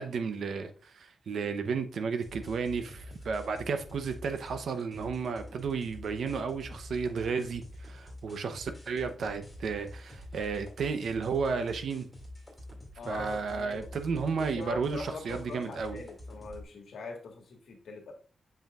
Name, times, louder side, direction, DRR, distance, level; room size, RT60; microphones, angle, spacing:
voice 1, 0.0-12.1 13.1-16.0, right 5 dB, 75° right, 0.8 m, -33 dB
sound 1, 2.2-16.6, left 1 dB, 5° left, 2.3 m, -47 dB
voice 2, 13.0-13.9 14.5-18.1, left 3 dB, 85° left, 1.5 m, -42 dB
7.2 x 5.4 x 2.4 m
wide cardioid pair, 125°, 0 cm